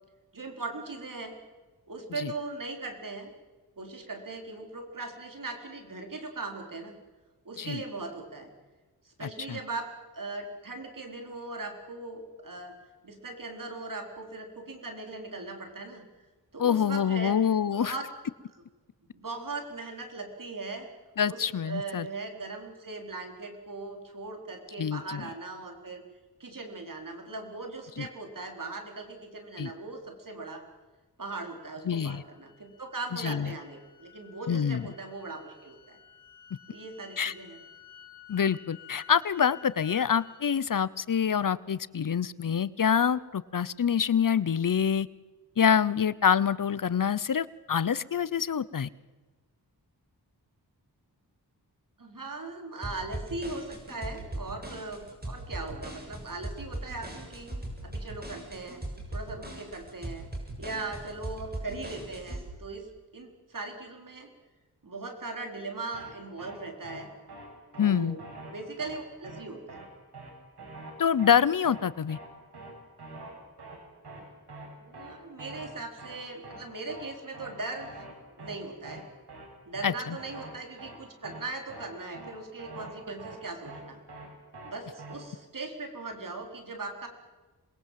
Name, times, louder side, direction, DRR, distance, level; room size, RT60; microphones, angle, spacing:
voice 1, 0.3-1.3 1.9-3.3 3.8-7.0 7.4-8.5 9.2-9.9 10.1-12.7 13.0-16.1 16.5-17.4 17.8-18.1 19.1-20.9 21.3-26.0 26.4-30.6 31.2-36.0 36.7-37.6 52.0-57.5 57.8-58.8 59.1-60.3 60.6-62.9 63.1-64.3 64.8-67.1 67.7-68.2 68.5-69.9 74.8-78.0 78.4-79.1 79.7-84.0 84.6-87.1, right 3 dB, 55° right, 4 dB, 4.5 m, -39 dB
voice 2, 16.6-17.9 21.2-22.1 24.8-25.2 28.0-28.1 29.6-29.7 31.9-32.2 33.1-33.5 34.5-34.8 37.2-37.3 38.3-45.1 45.6-48.9 67.8-68.2 71.0-72.2 79.8-80.2, left 7 dB, 55° left, 19 dB, 0.8 m, -26 dB
sound 1, 31.3-40.4, left 9 dB, 85° left, 3.6 m, -53 dB
sound 2, 52.8-62.4, right 1 dB, 25° right, 7.2 m, -39 dB
sound 3, 65.9-66.1 66.4-66.6 66.8-67.0 67.3-67.5 67.7-67.9 68.2-68.5 68.8-69.0 69.2-69.4 69.7-69.9 70.1-70.3 70.6-70.9 71.2-71.4 71.6-71.8 72.1-72.3 72.5-72.7 73.0-73.3 73.6-73.8 74.0-74.2 74.5-74.7 74.9-75.1 75.4-75.7 76.0-76.2 76.4-76.6 76.9-77.1 77.3-77.5 77.8-78.1 78.4-78.6 78.8-79.0 79.3-79.5 79.7-79.9 80.2-80.5 80.8-81.0 81.2-81.4 81.7-81.9 82.1-82.3 82.6-82.9 83.2-83.4 83.6-83.8 84.1-84.3 84.5-84.7 85.0-85.1, right 2 dB, 85° right, 7.4 m, -44 dB
27.0 x 21.0 x 7.6 m, 1.3 s
wide cardioid pair, 70°, 39 cm